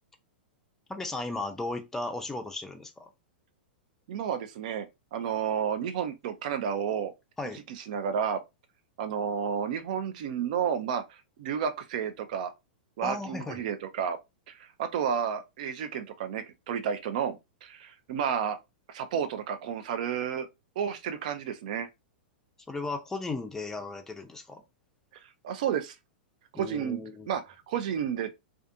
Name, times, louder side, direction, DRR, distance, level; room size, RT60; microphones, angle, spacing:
voice 1, 0.9-3.1 7.4-7.6 13.0-13.6 22.7-24.6 26.5-27.3, left 2 dB, 10° left, 0.5 m, -35 dB
voice 2, 4.1-4.9 5.1-7.1 7.7-8.4 9.0-12.5 13.0-14.2 14.5-18.6 18.9-20.5 20.8-21.9 25.4-25.9 26.5-27.0 27.3-28.3, right 8 dB, 50° right, 0.4 m, -31 dB
2.4 x 2.4 x 2.5 m
figure-of-eight pair, 100°, 5 cm